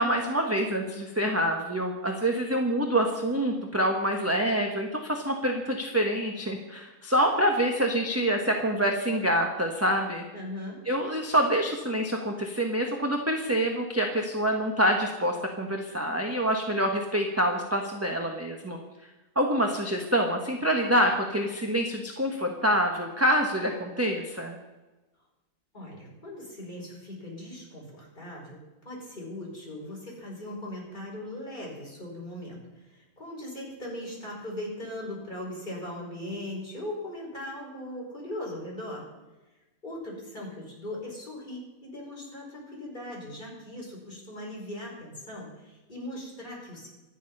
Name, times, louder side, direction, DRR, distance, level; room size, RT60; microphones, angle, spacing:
voice 1, 0.0-10.2 10.9-18.8 19.3-24.5, right 1 dB, 10° right, 2 dB, 1.3 m, -26 dB
voice 2, 10.3-10.8 25.7-39.1 39.8-46.9, left 1 dB, 30° left, -3 dB, 5.8 m, -39 dB
25.0 x 9.3 x 5.5 m, 1.1 s
omnidirectional pair, 1.6 m